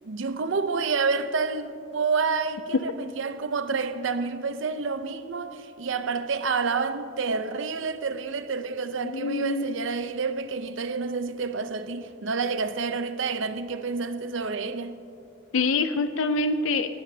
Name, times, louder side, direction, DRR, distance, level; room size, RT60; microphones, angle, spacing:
voice 1, 0.0-15.0, right 4 dB, 65° right, 0.6 m, -29 dB
voice 2, 9.0-9.7 15.5-16.9, left 3 dB, 75° left, 0.5 m, -25 dB
19.0 x 16.5 x 2.8 m
head